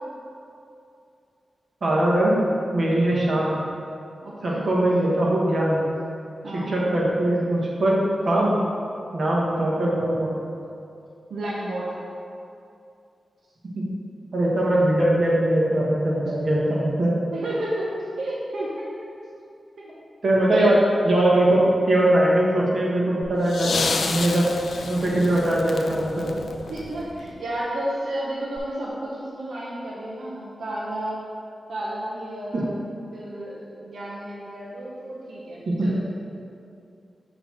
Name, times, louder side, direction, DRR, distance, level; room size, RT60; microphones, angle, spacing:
voice 1, 1.8-2.4 2.7-3.6 4.4-5.8 6.5-8.6 9.1-10.4 13.7-13.8 14.3-17.1 20.2-20.8 21.0-24.4 24.8-26.3 32.5-32.6 35.6-35.9, right 1 dB, 60° right, -5 dB, 1.3 m, -21 dB
voice 2, 4.2-4.7 6.4-6.7 11.3-11.9 17.3-18.9 19.8-19.9 20.5-20.8 26.7-31.3 31.7-36.0, right 1 dB, 90° right, -6 dB, 0.8 m, -32 dB
sound 1, 23.2-27.4 28.6-28.7, left 4 dB, 70° left, 0.4 m, -30 dB
6.7 x 3.0 x 5.7 m, 2.6 s
wide cardioid pair, 100°, 0 cm